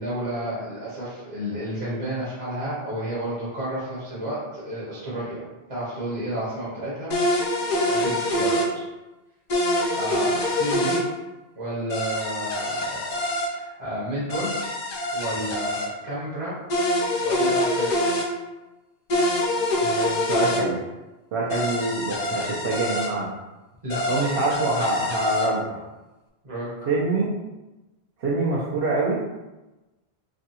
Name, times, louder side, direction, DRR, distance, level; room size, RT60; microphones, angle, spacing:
voice 1, 0.0-5.4 5.7-7.2 7.9-8.8 9.9-11.0 11.5-13.1 13.5-14.5 15.1-16.5 17.2-17.9 23.8-24.1 26.4-26.9, right 1 dB, 35° right, -8 dB, 0.9 m, -31 dB
sound 1, 7.1-8.7 9.5-11.0 11.9-13.5 14.3-15.9 16.7-18.3 19.1-20.6 21.5-23.1 23.9-25.5, left 1 dB, 55° left, 0.5 m, -25 dB
voice 2, 19.8-20.8 21.3-23.3 24.1-25.8 26.9-27.3 28.2-29.2, right 2 dB, 70° right, -6 dB, 0.8 m, -25 dB
3.4 x 2.3 x 2.7 m, 1.1 s
omnidirectional pair, 1.1 m